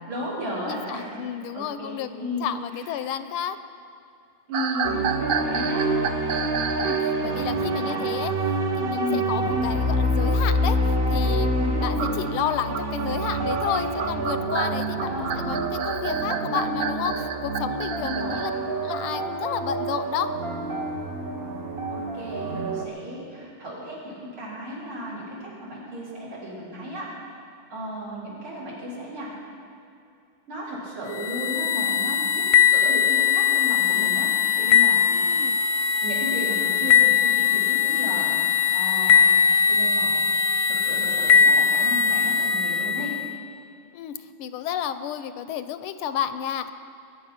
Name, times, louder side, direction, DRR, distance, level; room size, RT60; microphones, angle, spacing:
voice 1, 0.1-1.2 1.5-2.9 4.5-4.9 5.4-5.9 7.2-8.0 9.0-9.2 15.1-15.6 18.0-18.7 21.9-27.1 27.7-29.3 30.5-32.4 32.7-34.3 34.6-35.0 36.0-38.3 38.7-39.3 39.7-40.1 40.7-43.1, equal, 70° right, -7 dB, 5.2 m, -34 dB
voice 2, 0.7-3.6 6.7-8.3 8.7-18.5 18.8-20.3 35.0-35.6 43.9-46.7, left 9 dB, 80° left, 11 dB, 1.5 m, -31 dB
sound 1, 4.5-7.1 12.0-18.6, right 6 dB, 90° right, 0.7 m, -30 dB
sound 2, 4.8-22.8, right 1 dB, 35° right, 1.1 m, -27 dB
sound 3, 31.1-43.3, left 8 dB, 60° left, 1.1 m, -20 dB
21.0 x 10.5 x 5.9 m, 2.5 s
omnidirectional pair, 2.4 m